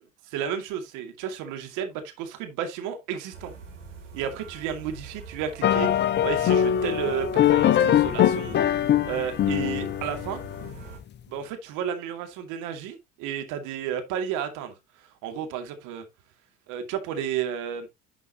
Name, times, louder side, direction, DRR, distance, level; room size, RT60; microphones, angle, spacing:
voice 1, 0.3-3.5 4.1-8.8 9.0-10.4 11.3-14.7 15.2-16.0 16.7-17.9, right 8 dB, 55° right, 2.4 m, -32 dB
sound 1, 3.3-11.0, right 4 dB, 80° right, 2.9 m, -44 dB
sound 2, 5.6-10.9, left 10 dB, 30° left, 0.7 m, -22 dB
11.5 x 5.6 x 2.9 m
figure-of-eight pair, 65°, 37 cm